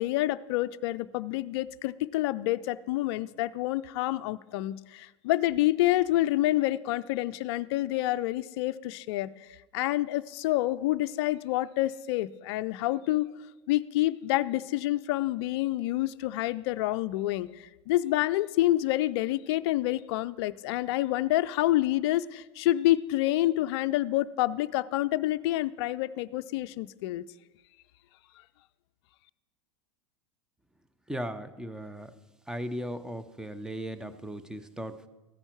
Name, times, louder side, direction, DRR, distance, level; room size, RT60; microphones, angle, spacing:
voice 1, 0.0-13.3 13.7-27.2, left 16 dB, 60° left, 12 dB, 0.4 m, -28 dB
voice 2, 31.1-32.1 32.5-35.1, equal, 5° right, 12 dB, 0.7 m, -37 dB
14.0 x 9.8 x 4.6 m, 1.1 s
hypercardioid pair, 90°, 15 cm